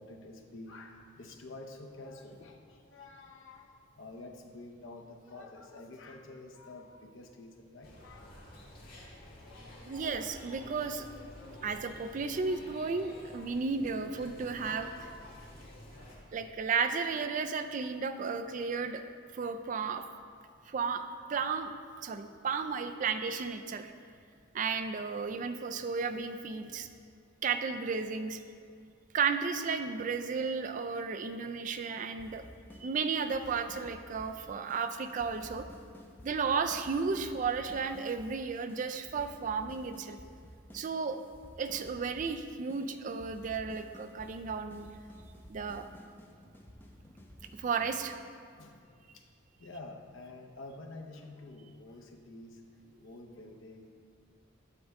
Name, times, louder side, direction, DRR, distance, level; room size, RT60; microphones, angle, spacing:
voice 1, 0.0-8.8 9.1-10.2 48.6-53.9, left 2 dB, 85° left, 3 dB, 0.8 m, -49 dB
sound 1, 7.8-16.2, left 1 dB, 50° left, 1.7 m, -50 dB
voice 2, 9.9-11.1 11.6-15.1 16.3-19.0 19.3-20.0 20.7-21.0 21.3-21.7 22.0-23.9 24.5-26.9 27.4-28.4 29.1-32.4 32.8-35.7 36.2-40.2 40.7-41.2 41.6-44.9 45.5-45.9 47.6-48.2, right 5 dB, 40° right, 8 dB, 0.3 m, -33 dB
sound 2, 32.2-32.8 33.1-34.4 34.7-34.8 35.1-38.3 38.7-38.8 39.1-40.8 41.1-42.4 42.7-42.8 43.1-48.2, equal, 10° left, 0.7 m, -52 dB
8.5 x 3.6 x 6.4 m, 2.2 s
head